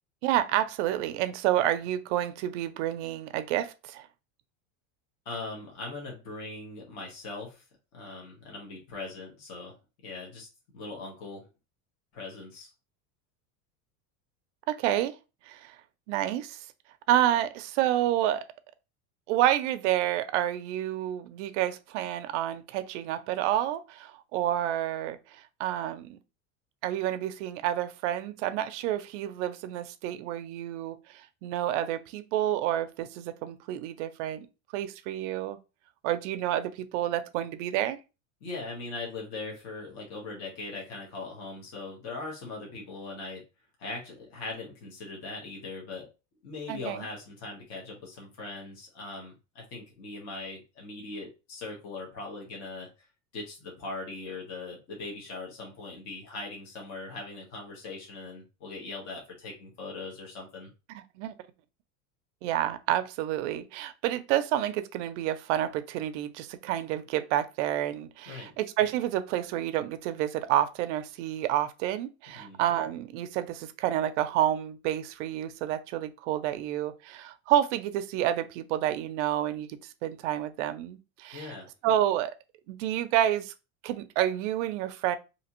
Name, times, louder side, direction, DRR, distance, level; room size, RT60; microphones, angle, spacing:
voice 1, 0.2-4.1 14.7-15.2 15.5-15.8 16.1-16.6 17.1-18.4 19.3-26.2 26.8-34.5 34.7-35.6 36.0-38.0 46.7-47.1 60.9-61.3 62.4-79.7 80.0-81.6 81.8-82.3 82.7-83.5 83.8-85.2, right 12 dB, 60° right, 0.5 m, -29 dB
voice 2, 5.2-7.6 7.9-9.8 10.0-10.5 10.7-11.5 12.1-12.7 38.4-43.4 43.8-46.1 46.4-52.9 53.3-60.7 68.3-68.5 72.3-72.6 81.3-81.7, left 3 dB, 40° left, 1.2 m, -40 dB
3.2 x 2.8 x 2.9 m
cardioid pair, 175°, 41 cm